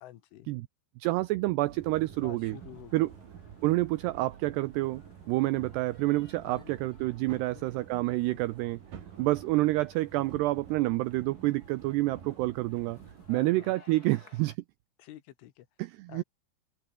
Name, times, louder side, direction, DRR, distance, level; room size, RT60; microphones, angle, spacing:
voice 1, 0.0-0.5 2.2-3.2 6.4-6.8 7.3-7.7 8.3-8.4 13.3-13.7 15.0-15.7 16.1-16.2, left 13 dB, 80° left, 4.1 m, -49 dB
voice 2, 1.0-2.6 2.9-3.1 3.6-5.0 5.3-8.8 9.2-13.0 13.3-14.6 15.8-16.2, right 19 dB, 85° right, 2.4 m, -28 dB
sound 1, 1.6-13.3, right 8 dB, 50° right, 3.6 m, -49 dB
sound 2, 2.4-14.6, left 4 dB, 30° left, 2.1 m, -61 dB
open air
omnidirectional pair, 5.6 m